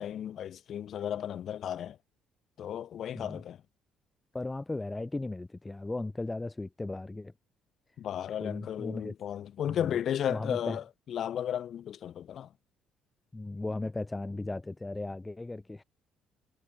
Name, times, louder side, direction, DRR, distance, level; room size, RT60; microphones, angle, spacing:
voice 1, 0.0-2.0 2.6-3.6 8.0-12.5, left 10 dB, 55° left, 0.8 m, -34 dB
voice 2, 4.3-7.3 8.4-9.1 9.7-10.0 10.3-10.8 13.3-15.8, left 2 dB, 15° left, 0.3 m, -36 dB
figure-of-eight pair, 50°, 0 cm